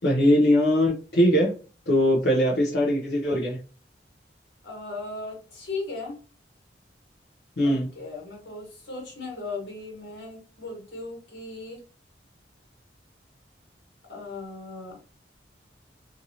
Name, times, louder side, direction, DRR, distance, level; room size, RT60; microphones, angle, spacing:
voice 1, 0.0-1.5 1.9-3.6 7.6-7.9, equal, 65° left, -4 dB, 0.6 m, -21 dB
voice 2, 4.6-6.2 7.6-11.8 14.1-15.0, left 3 dB, 90° left, -1 dB, 1.4 m, -37 dB
2.7 x 2.6 x 2.7 m, 0.36 s
head